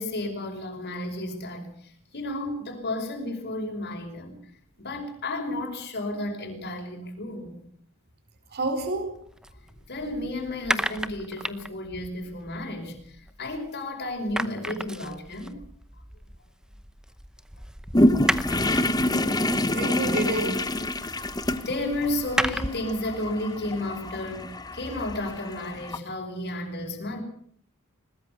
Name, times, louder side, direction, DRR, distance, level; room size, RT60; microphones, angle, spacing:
voice 1, 0.0-4.4 4.8-7.6 9.5-15.6 21.3-27.2, left 1 dB, 50° left, 2 dB, 5.4 m, -33 dB
voice 2, 8.5-9.1 19.1-20.6, right 2 dB, 50° right, 7 dB, 4.4 m, -29 dB
sound 1, 9.2-13.8 14.1-23.0, right 1 dB, 5° right, 0.8 m, -34 dB
sound 2, 17.9-26.0, left 1 dB, 20° left, 1.2 m, -27 dB
21.5 x 20.5 x 6.7 m, 0.63 s
head